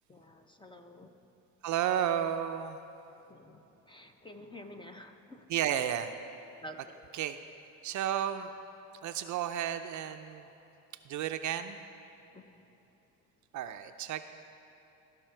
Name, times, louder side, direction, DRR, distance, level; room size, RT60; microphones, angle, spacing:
voice 1, 0.1-1.3 3.2-5.5 6.6-6.9 12.3-12.8, left 1 dB, 15° left, 6 dB, 0.6 m, -50 dB
voice 2, 1.6-2.8 5.5-6.1 7.1-7.4 7.8-8.5 9.0-10.5 11.0-11.8 13.5-14.2, right 10 dB, 50° right, 8 dB, 0.5 m, -32 dB
17.0 x 5.7 x 4.5 m, 2.9 s
supercardioid pair, 95°, 39 cm